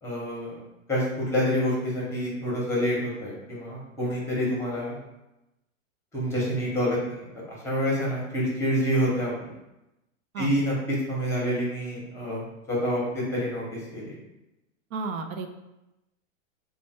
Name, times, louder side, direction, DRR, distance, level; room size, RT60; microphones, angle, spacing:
voice 1, 0.0-0.6 0.9-5.0 6.1-9.5 10.4-14.2, equal, 5° left, -4 dB, 0.8 m, -27 dB
voice 2, 14.9-15.5, right 4 dB, 80° right, 6 dB, 0.6 m, -32 dB
3.3 x 2.2 x 4.1 m, 0.94 s
hypercardioid pair, 140°, 41 cm